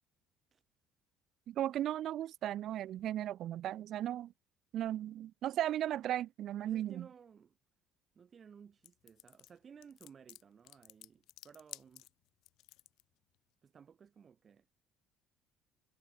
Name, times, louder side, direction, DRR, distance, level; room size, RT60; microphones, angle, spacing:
voice 1, 1.5-4.3 4.7-7.1, right 12 dB, 55° right, 0.4 m, -36 dB
voice 2, 6.6-7.6 8.2-12.1 13.6-14.7, right 7 dB, 30° right, 2.4 m, -57 dB
sound 1, 8.8-13.0, left 17 dB, 70° left, 1.0 m, -54 dB
cardioid pair, 145°, 0 cm